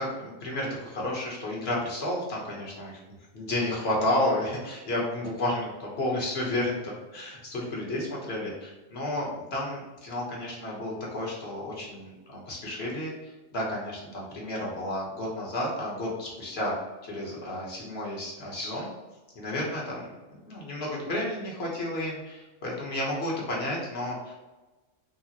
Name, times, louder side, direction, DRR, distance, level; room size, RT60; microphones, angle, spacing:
voice 1, 0.0-3.0 3.3-13.1 13.5-16.8 17.0-18.9 19.3-20.1 20.4-24.3, left 1 dB, 50° left, -3 dB, 1.2 m, -31 dB
5.4 x 2.0 x 2.8 m, 1.1 s
omnidirectional pair, 1.4 m